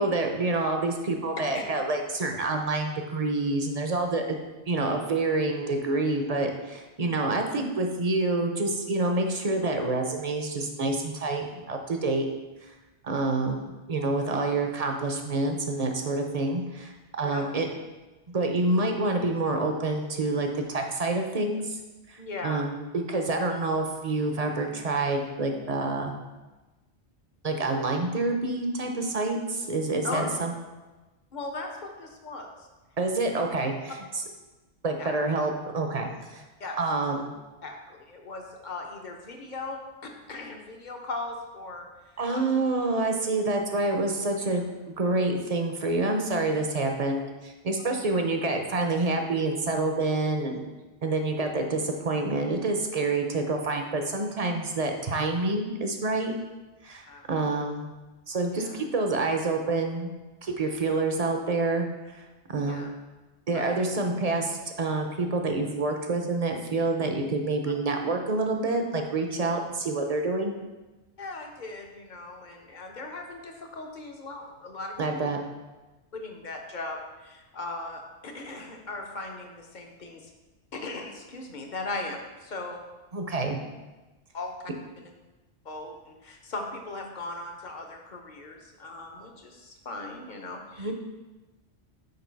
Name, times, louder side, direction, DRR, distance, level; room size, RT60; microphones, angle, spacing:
voice 1, 0.0-4.4 4.7-12.3 13.0-16.9 17.2-17.7 18.3-21.8 22.1-26.2 27.4-30.5 33.0-33.9 34.8-36.4 36.8-37.4 42.2-50.6 51.0-56.3 56.8-57.9 58.3-60.1 60.4-61.9 62.1-62.2 62.5-62.9 63.5-70.5 75.0-75.4 83.1-83.6 90.8-90.9, right 2 dB, 40° right, 4 dB, 0.7 m, -27 dB
voice 2, 22.2-22.7 30.0-30.3 31.3-32.7 35.0-35.2 36.6-36.8 37.6-42.4 47.8-47.9 57.1-57.2 58.5-58.8 62.6-62.9 63.5-63.9 71.2-75.3 76.1-80.3 80.7-82.8 84.3-84.7 85.0-85.1 85.6-90.9, left 2 dB, 45° left, 2 dB, 0.9 m, -38 dB
6.8 x 4.7 x 4.6 m, 1.1 s
omnidirectional pair, 1.2 m